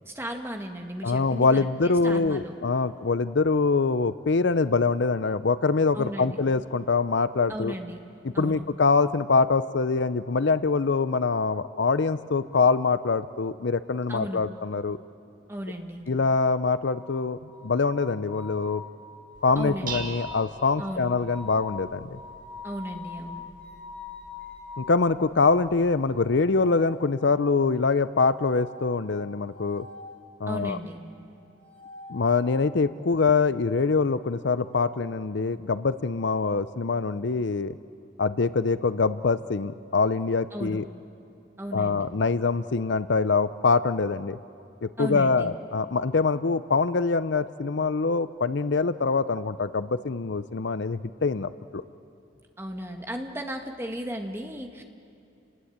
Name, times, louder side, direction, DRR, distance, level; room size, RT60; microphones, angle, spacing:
voice 1, 0.1-2.5 5.9-6.4 7.5-8.0 8.3-8.7 14.1-14.5 15.5-16.0 19.6-20.1 20.8-21.1 22.6-23.4 30.5-31.0 40.5-40.8 41.6-42.1 45.0-45.5 52.6-54.8, equal, 10° right, 3 dB, 1.7 m, -35 dB
voice 2, 1.0-7.7 8.4-15.0 16.1-18.8 19.4-22.2 24.8-29.9 30.4-30.8 32.1-37.8 38.2-40.9 41.7-44.4 44.8-51.8, left 4 dB, 65° left, 14 dB, 0.6 m, -24 dB
sound 1, 16.8-24.9 26.2-27.4 28.2-30.2 31.4-32.7, left 4 dB, 5° left, 6.0 m, -44 dB
Dishes pots and pans, 19.3-26.4, right 5 dB, 40° right, 2.2 m, -44 dB
30.0 x 19.5 x 8.8 m, 2.6 s
head